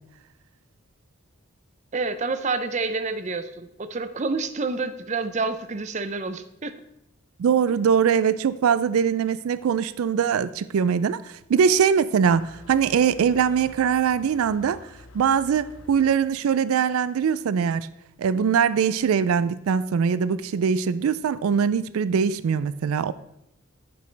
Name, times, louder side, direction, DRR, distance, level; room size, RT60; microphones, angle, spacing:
voice 1, 1.9-6.8, right 3 dB, 35° right, 11 dB, 0.5 m, -28 dB
voice 2, 7.4-14.8 15.1-17.9 18.2-23.1, right 7 dB, 85° right, 16 dB, 0.3 m, -22 dB
Motor vehicle (road), 12.3-17.5, left 1 dB, 70° left, 0.9 m, -48 dB
10.0 x 8.4 x 3.3 m, 0.85 s
head